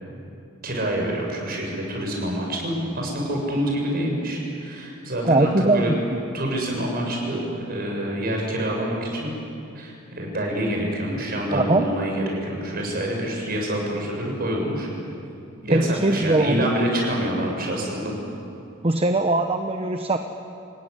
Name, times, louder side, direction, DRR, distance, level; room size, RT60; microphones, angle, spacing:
voice 1, 0.6-5.9 6.3-9.3 9.7-14.9 15.6-18.1, right 1 dB, 50° right, 0 dB, 6.7 m, -27 dB
voice 2, 5.2-6.2 11.5-11.8 15.7-16.7 18.8-20.2, right 2 dB, 30° right, 6 dB, 1.0 m, -21 dB
28.0 x 16.5 x 9.9 m, 2.7 s
head